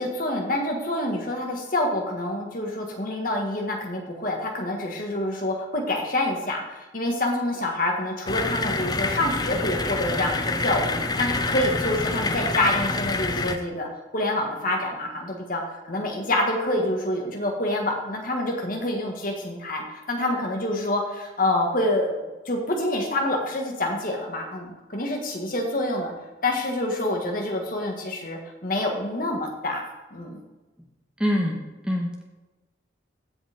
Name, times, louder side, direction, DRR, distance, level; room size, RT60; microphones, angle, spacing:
voice 1, 0.0-13.9 14.1-15.6 15.9-26.1 26.4-29.8 30.1-30.4, left 1 dB, 45° left, 1 dB, 1.7 m, -27 dB
sound 1, 8.3-13.6, left 3 dB, 20° left, 0.5 m, -27 dB
voice 2, 31.2-32.2, equal, 5° right, -1 dB, 1.2 m, -25 dB
15.5 x 5.3 x 3.6 m, 1.2 s
head